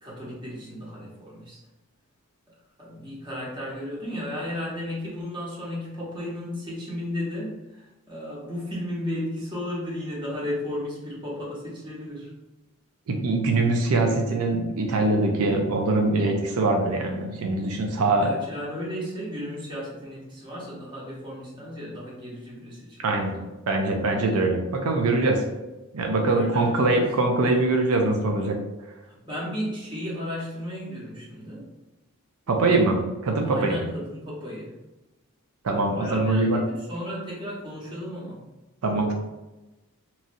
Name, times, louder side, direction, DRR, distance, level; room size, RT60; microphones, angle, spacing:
voice 1, 0.0-1.6 2.8-12.3 17.9-23.5 26.2-27.1 29.2-31.7 32.5-32.7 33.5-34.7 35.9-38.4 38.9-39.1, left 1 dB, 20° right, -6 dB, 1.0 m, -34 dB
voice 2, 13.1-18.3 23.0-23.3 23.7-25.4 25.9-28.6 32.5-33.8 35.6-36.6 38.8-39.1, right 2 dB, 85° right, 2 dB, 0.4 m, -23 dB
3.0 x 2.5 x 2.6 m, 1.1 s
head